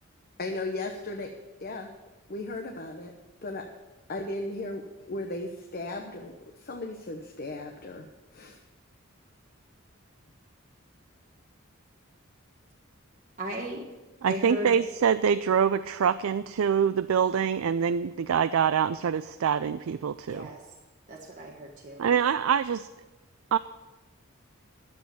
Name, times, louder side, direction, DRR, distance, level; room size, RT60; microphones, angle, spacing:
voice 1, 0.4-1.3 1.6-1.9 2.3-3.1 3.4-3.7 4.1-8.1 8.3-8.6, left 2 dB, 45° left, 3 dB, 1.0 m, -36 dB
voice 2, 13.4-13.8 14.3-14.8 20.3-20.6 21.1-22.0, equal, 40° right, -2 dB, 1.4 m, -36 dB
voice 3, 14.2-20.5 22.0-22.9 23.5-23.6, right 7 dB, 85° right, 12 dB, 0.4 m, -25 dB
12.5 x 7.9 x 7.0 m, 1.1 s
head